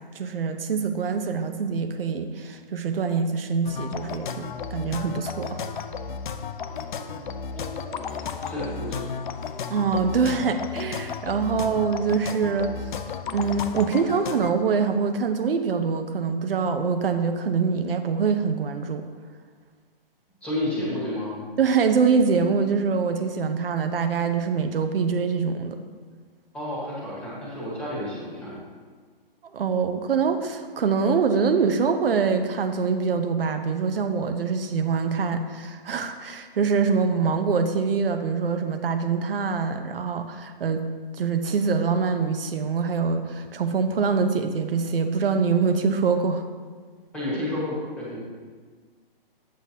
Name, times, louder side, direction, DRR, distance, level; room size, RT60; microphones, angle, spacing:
voice 1, 0.1-5.6 9.7-12.7 13.3-19.0 21.6-25.8 29.5-40.9 41.1-46.5, right 5 dB, 75° right, 7 dB, 0.7 m, -24 dB
sound 1, 3.6-14.5, left 6 dB, 55° left, 0.5 m, -33 dB
voice 2, 6.6-9.1 20.4-21.3 26.5-28.5 47.1-48.2, left 1 dB, 5° left, -7 dB, 1.3 m, -32 dB
8.1 x 7.8 x 2.8 m, 1.5 s
hypercardioid pair, 165°, 29 cm